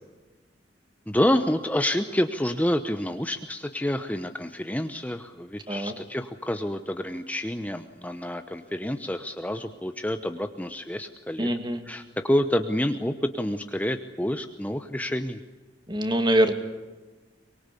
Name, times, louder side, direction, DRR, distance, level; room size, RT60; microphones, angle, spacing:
voice 1, 1.1-11.5 11.8-15.4, left 1 dB, 10° left, 8 dB, 0.9 m, -28 dB
voice 2, 11.4-11.8 15.9-16.5, right 1 dB, 25° right, 7 dB, 2.4 m, -23 dB
24.0 x 23.0 x 8.4 m, 1.2 s
head